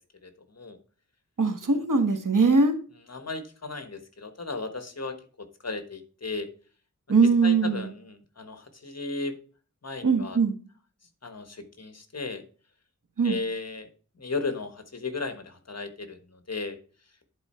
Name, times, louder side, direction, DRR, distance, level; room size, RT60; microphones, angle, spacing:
voice 1, 1.4-2.7 7.1-7.9 10.0-10.5 13.2-13.4, right 4 dB, 75° right, 6 dB, 1.4 m, -21 dB
voice 2, 3.1-5.1 5.6-6.5 7.4-9.3 9.8-10.4 11.2-12.4 13.2-13.9 14.2-16.2 16.5-16.8, left 3 dB, 50° left, 9 dB, 1.3 m, -35 dB
10.5 x 4.4 x 4.3 m, 0.39 s
wide cardioid pair, 75°, 32 cm